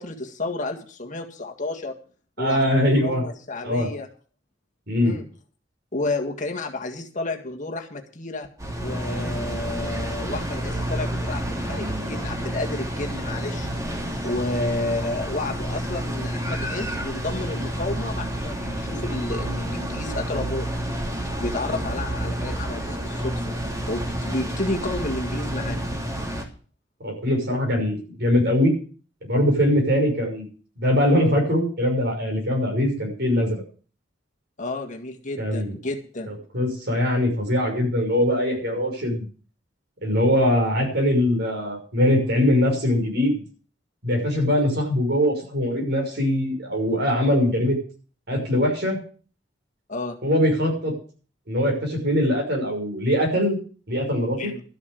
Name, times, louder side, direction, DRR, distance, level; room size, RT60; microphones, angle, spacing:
voice 1, 0.0-2.0 2.4-4.1 5.0-5.3 5.9-8.5 8.8-13.7 14.2-20.7 21.4-23.6 23.9-25.8 34.6-36.3 49.9-50.2 54.4-54.6, left 2 dB, 45° left, 3 dB, 1.8 m, -31 dB
voice 2, 2.4-3.2 3.6-3.9 4.9-5.1 27.0-28.7 29.2-30.4 30.8-33.6 35.4-35.7 36.3-39.3 40.0-43.3 44.0-47.8 48.3-49.0 50.2-50.9 51.5-53.6 53.9-54.5, left 1 dB, 60° right, 1 dB, 5.9 m, -22 dB
sound 1, 8.6-26.4, right 1 dB, 20° right, 2.9 m, -29 dB
13.0 x 7.0 x 8.4 m, 0.41 s
head